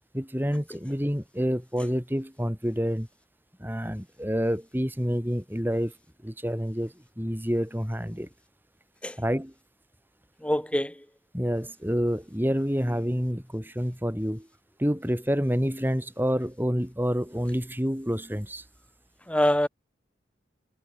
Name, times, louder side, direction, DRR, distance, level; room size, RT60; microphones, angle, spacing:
voice 1, 0.1-3.1 3.6-5.9 6.2-8.3 9.2-9.5 11.3-14.5 14.8-18.6, equal, 10° right, 7.0 m, -28 dB
voice 2, 10.4-10.9 19.3-19.7, left 1 dB, 5° left, 1.0 m, -24 dB
head